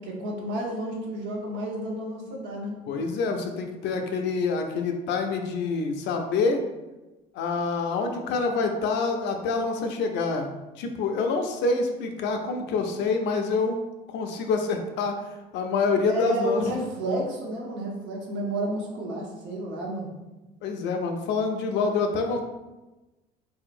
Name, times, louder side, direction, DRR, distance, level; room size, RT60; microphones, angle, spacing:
voice 1, 0.0-2.8 16.1-20.1, right 1 dB, 70° right, -1 dB, 0.9 m, -31 dB
voice 2, 2.9-6.6 7.3-10.5 10.8-15.2 15.5-16.6 20.6-22.4, left 4 dB, 65° left, 4 dB, 0.5 m, -26 dB
3.6 x 2.8 x 2.5 m, 1.1 s
hypercardioid pair, 70°, 20 cm